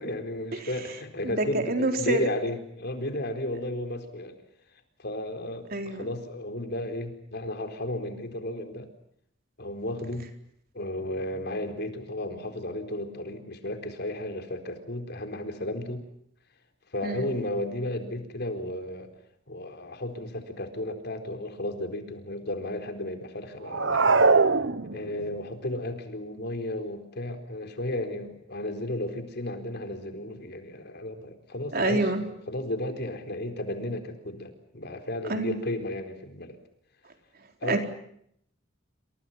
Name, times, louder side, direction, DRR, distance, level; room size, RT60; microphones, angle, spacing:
voice 1, 0.0-4.4 5.0-8.9 9.6-10.3 10.7-16.1 16.9-19.1 19.5-24.3 24.8-36.6 37.6-37.8, left 1 dB, 60° left, 7 dB, 4.3 m, -34 dB
voice 2, 1.2-2.2 5.7-6.1 17.0-17.3 31.7-32.2 35.3-35.6 37.7-37.8, right 2 dB, 50° right, 5 dB, 4.2 m, -26 dB
sound 1, 23.7-25.3, right 4 dB, 75° right, 1.3 m, -21 dB
28.5 x 27.0 x 5.8 m, 0.70 s
head